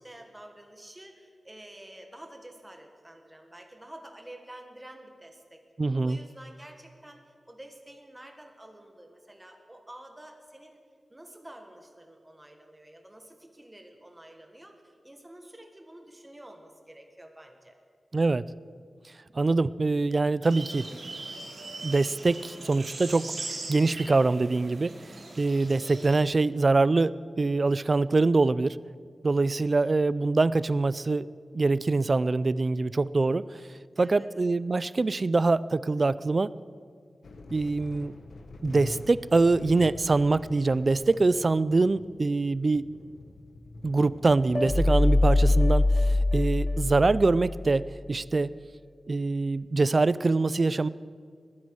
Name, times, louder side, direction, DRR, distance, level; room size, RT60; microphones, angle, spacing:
voice 1, 0.0-5.6 6.0-10.8 11.1-17.8 33.9-34.3, right 1 dB, 15° right, 4 dB, 1.6 m, -49 dB
voice 2, 5.8-6.2 18.1-18.5 19.3-21.1 21.8-23.3 23.7-24.9 25.4-28.8 29.2-31.3 31.5-33.6 34.0-36.5 37.5-38.1 38.6-42.8 43.8-48.5 49.1-50.9, right 3 dB, 40° right, 18 dB, 0.3 m, -24 dB
sound 1, 20.4-26.2, right 3 dB, 65° right, 2.6 m, -40 dB
sound 2, 37.2-46.3, left 2 dB, 90° left, 1.2 m, -45 dB
sound 3, 44.5-47.7, left 2 dB, 20° left, 0.5 m, -23 dB
20.0 x 9.6 x 6.4 m, 2.1 s
wide cardioid pair, 130°, 0 cm